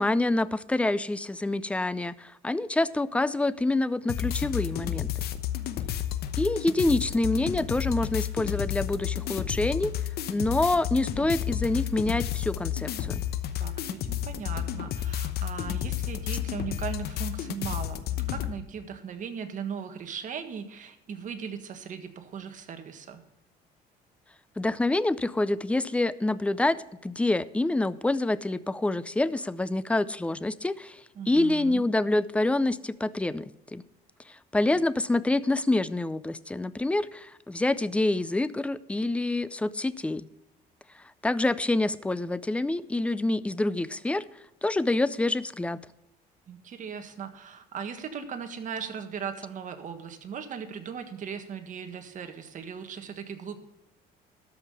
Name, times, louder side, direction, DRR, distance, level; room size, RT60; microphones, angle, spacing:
voice 1, 0.0-5.1 6.4-10.0 10.3-13.2 24.6-31.0 31.3-33.8 34.5-40.2 41.2-44.2 44.6-45.8, left 2 dB, 5° left, 16 dB, 0.5 m, -27 dB
sound 1, 4.1-18.5, left 11 dB, 70° left, 1.0 m, -31 dB
voice 2, 13.6-18.0 18.3-23.2 31.1-31.8 46.5-53.6, right 7 dB, 50° right, 7 dB, 1.6 m, -38 dB
13.0 x 5.7 x 6.8 m, 0.90 s
cardioid pair, 110°, 17 cm